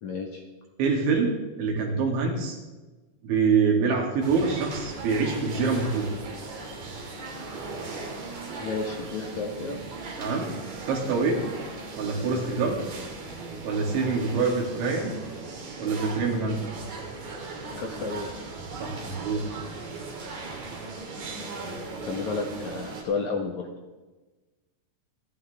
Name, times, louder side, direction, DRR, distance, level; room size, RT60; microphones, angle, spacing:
voice 1, 0.0-0.4 8.6-9.8 17.8-18.3 21.4-21.7 22.1-23.7, left 4 dB, 65° left, 1 dB, 1.9 m, -32 dB
voice 2, 0.8-2.6 3.2-6.1 10.2-10.5 10.9-11.4 12.0-12.8 13.7-15.1 15.8-16.6 18.8-19.5, right 4 dB, 75° right, -1 dB, 5.2 m, -25 dB
sound 1, 4.2-23.0, right 3 dB, 45° right, 3.1 m, -38 dB
29.5 x 10.5 x 3.5 m, 1.2 s
omnidirectional pair, 5.5 m